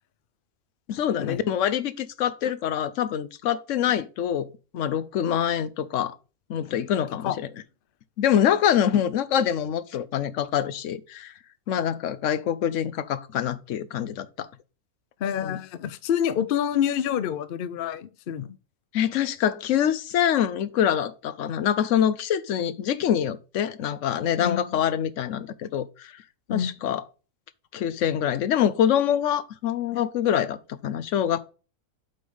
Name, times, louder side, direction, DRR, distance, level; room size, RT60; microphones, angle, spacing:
voice 1, 0.9-6.2 6.5-7.5 8.2-11.3 11.7-14.5 15.4-15.6 18.9-26.2 26.5-27.0 27.7-30.6 30.8-31.4, left 9 dB, 65° left, 0.9 m, -25 dB
voice 2, 15.2-18.6 24.4-24.8 26.5-26.7, left 9 dB, 90° left, 0.4 m, -27 dB
7.8 x 3.3 x 5.4 m
omnidirectional pair, 1.6 m